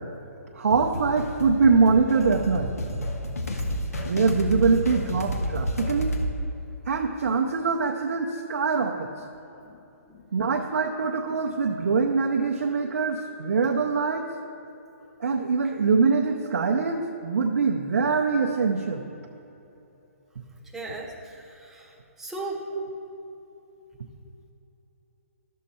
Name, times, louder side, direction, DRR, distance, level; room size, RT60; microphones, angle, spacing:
voice 1, 0.5-2.7 4.1-6.2 6.9-9.1 10.3-14.3 15.2-19.0 22.7-22.9, right 4 dB, 70° right, 1 dB, 0.7 m, -23 dB
sound 1, 0.7-6.3, equal, 90° left, 1.2 m, -30 dB
voice 2, 20.7-22.7, right 2 dB, 5° right, -2 dB, 1.0 m, -38 dB
11.5 x 6.5 x 4.3 m, 3.0 s
hypercardioid pair, 140°, 8 cm